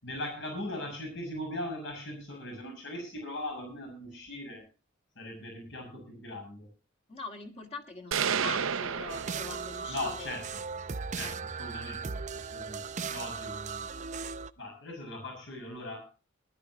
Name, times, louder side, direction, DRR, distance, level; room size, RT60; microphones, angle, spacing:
voice 1, 0.0-4.6 5.1-6.7 9.9-10.6 11.1-13.9 14.6-16.0, left 1 dB, 60° left, 2 dB, 6.3 m, -39 dB
voice 2, 7.1-10.3 11.2-11.4, left 3 dB, 30° left, 2 dB, 2.4 m, -42 dB
sound 1, 8.1-10.1, right 7 dB, 80° right, 0.7 m, -31 dB
sound 2, 9.1-14.5, right 5 dB, 35° right, 0.6 m, -37 dB
19.5 x 12.0 x 2.9 m, 0.32 s
head